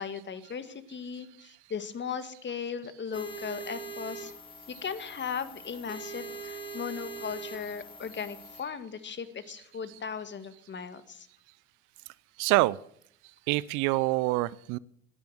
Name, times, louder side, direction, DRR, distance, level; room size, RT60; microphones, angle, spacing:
voice 1, 0.0-4.3 4.8-11.3, left 6 dB, 30° left, 12 dB, 1.9 m, -37 dB
sound 1, 3.1-8.6, right 3 dB, 15° left, 3.6 m, -42 dB
voice 2, 12.4-12.8 13.5-14.8, right 20 dB, 55° right, 22 dB, 0.6 m, -26 dB
16.0 x 10.5 x 7.9 m, 0.66 s
hypercardioid pair, 75°, 37 cm